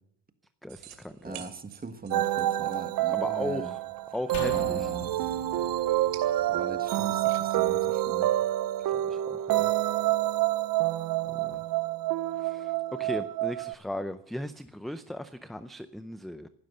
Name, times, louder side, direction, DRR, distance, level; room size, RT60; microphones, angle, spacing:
voice 1, 0.6-1.4 3.1-3.8 4.1-4.9 8.8-9.7 11.4-11.6 12.4-16.5, left 1 dB, ahead, 11 dB, 0.5 m, -37 dB
sound 1, 0.7-7.9, right 11 dB, 85° right, 2.8 m, -52 dB
voice 2, 1.2-3.7 4.4-5.3 6.5-8.3, right 4 dB, 20° right, 9 dB, 1.5 m, -40 dB
sound 2, 2.1-13.7, right 14 dB, 55° right, 0.7 m, -28 dB
sound 3, 4.3-7.7 8.0-8.1, left 5 dB, 70° left, 3.2 m, -42 dB
15.5 x 12.0 x 6.7 m, 0.75 s
cardioid pair, 100°, 41 cm